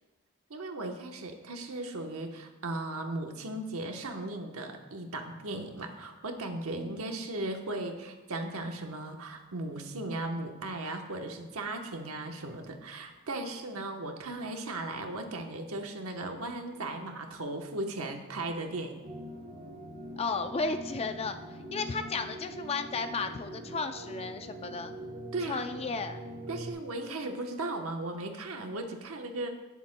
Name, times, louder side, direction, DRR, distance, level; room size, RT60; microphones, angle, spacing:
voice 1, 0.5-19.0 25.3-25.6 26.5-29.5, right 2 dB, 75° right, 4 dB, 1.0 m, -37 dB
sound 1, 19.0-26.7, equal, 45° right, 1.7 m, -43 dB
voice 2, 20.2-21.4 21.7-24.9 25.5-26.2 27.1-27.3, left 4 dB, 30° left, 8 dB, 0.4 m, -34 dB
18.0 x 7.1 x 2.2 m, 1.2 s
head